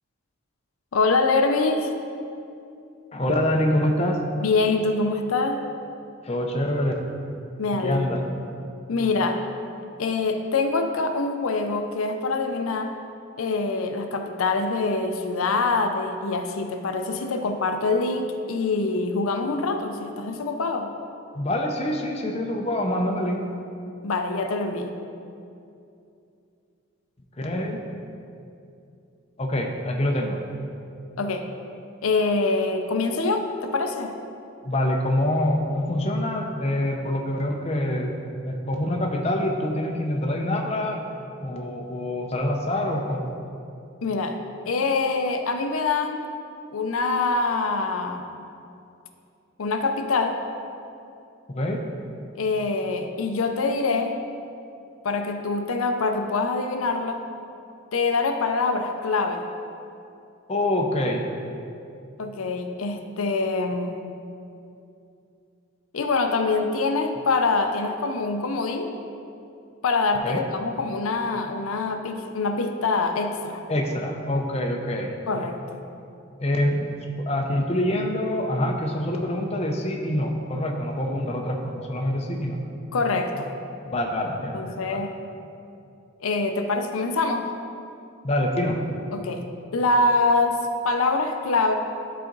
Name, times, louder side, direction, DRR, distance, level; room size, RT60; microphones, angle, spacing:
voice 1, 0.9-1.9 4.4-5.6 7.6-8.3 8.9-9.4 10.0-13.0 13.4-20.9 24.0-24.9 31.2-31.5 32.0-34.1 44.0-44.4 44.7-46.2 46.7-48.2 49.6-50.4 52.3-54.2 55.0-57.2 57.9-59.5 62.2-64.0 65.9-68.9 69.8-73.6 75.3-75.8 82.9-83.5 84.5-85.2 86.2-87.5 89.1-89.4 89.7-91.7, left 3 dB, 85° left, 5 dB, 0.6 m, -24 dB
voice 2, 3.1-4.3 6.2-7.0 7.8-8.3 21.3-23.4 27.4-27.8 29.4-30.4 34.7-38.1 38.4-41.0 41.4-43.3 51.5-51.9 60.5-61.3 70.2-70.4 73.7-75.2 76.4-82.6 83.8-85.0 88.2-88.8, left 1 dB, 30° left, 1 dB, 0.6 m, -25 dB
12.0 x 4.2 x 3.9 m, 2.6 s
head